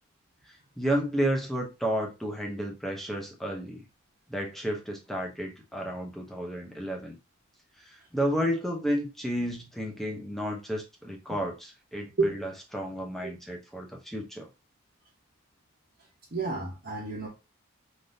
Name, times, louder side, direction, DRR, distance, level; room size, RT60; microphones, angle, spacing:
voice 1, 0.5-3.8 4.3-7.2 7.8-14.5, equal, ahead, 0.6 m, -32 dB
voice 2, 16.3-17.3, right 3 dB, 45° right, 0.8 m, -30 dB
3.4 x 2.6 x 2.6 m
head